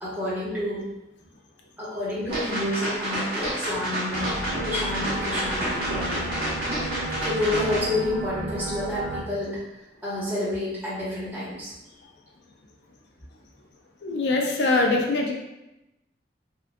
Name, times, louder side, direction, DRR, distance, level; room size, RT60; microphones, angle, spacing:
voice 1, 0.0-0.8 1.8-4.4 4.6-6.3 7.2-9.6 10.0-11.7, left 1 dB, 10° right, -11 dB, 1.1 m, -29 dB
sound 1, 2.3-7.8, right 1 dB, 55° right, 1.2 m, -29 dB
sound 2, 4.1-9.2, right 1 dB, 80° right, 0.6 m, -33 dB
voice 2, 14.0-15.3, left 2 dB, 70° left, 0 dB, 0.5 m, -23 dB
3.6 x 2.3 x 2.2 m, 0.92 s
head